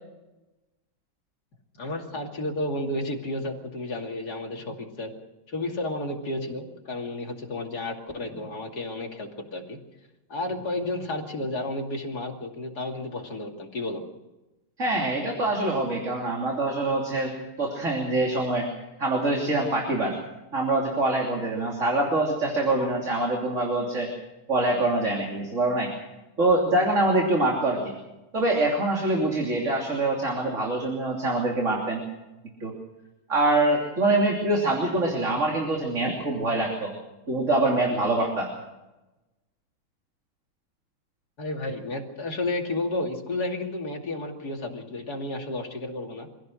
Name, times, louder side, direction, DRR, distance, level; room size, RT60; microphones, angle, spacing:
voice 1, 1.8-5.1 5.5-9.8 10.3-14.0 41.4-46.3, left 2 dB, 45° left, 2 dB, 3.1 m, -32 dB
voice 2, 14.8-18.7 19.0-20.2 20.5-24.1 24.5-25.9 26.4-27.9 28.3-32.0 32.6-32.7 33.3-36.9 37.3-38.5, right 2 dB, 35° right, 0 dB, 3.4 m, -24 dB
25.0 x 16.5 x 6.4 m, 1.0 s
omnidirectional pair, 2.4 m